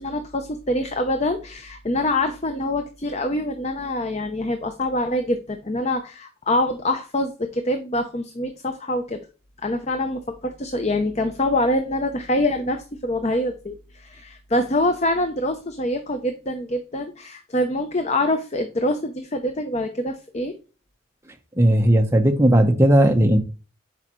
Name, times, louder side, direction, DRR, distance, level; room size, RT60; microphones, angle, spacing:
voice 1, 0.0-9.2 9.6-20.5, left 1 dB, 30° left, 0.6 m, -25 dB
voice 2, 21.6-23.4, right 1 dB, 10° right, 0.9 m, -16 dB
10.5 x 4.8 x 3.1 m
head